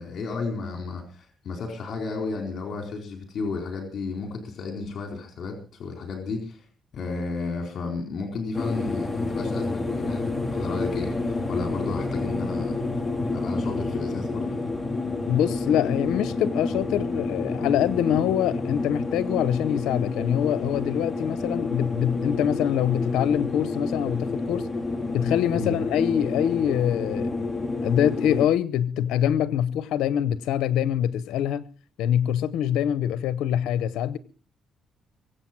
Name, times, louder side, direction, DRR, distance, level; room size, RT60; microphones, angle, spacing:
voice 1, 0.0-6.6 6.9-12.8 13.3-14.6 25.5-25.7, left 4 dB, 60° left, 4.2 m, -33 dB
sound 1, 8.5-28.5, left 3 dB, 20° left, 2.4 m, -29 dB
voice 2, 15.3-24.7 25.1-27.3 27.8-31.7 32.0-34.2, left 10 dB, 85° left, 0.7 m, -24 dB
23.5 x 7.9 x 6.0 m
cardioid pair, 90°, 0 cm